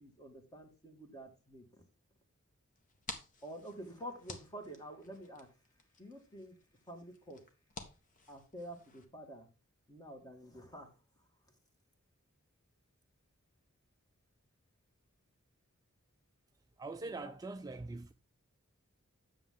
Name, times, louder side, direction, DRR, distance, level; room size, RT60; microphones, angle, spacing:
voice 1, 0.0-1.7 3.4-5.5 6.0-6.6 6.9-7.4 8.3-9.5 9.9-10.9 17.0-17.3, equal, 20° left, 2.1 m, -48 dB
sound 1, 2.7-9.0, left 3 dB, 40° left, 1.5 m, -52 dB
voice 2, 16.8-18.1, right 3 dB, 15° right, 0.4 m, -43 dB
10.0 x 7.2 x 3.7 m
head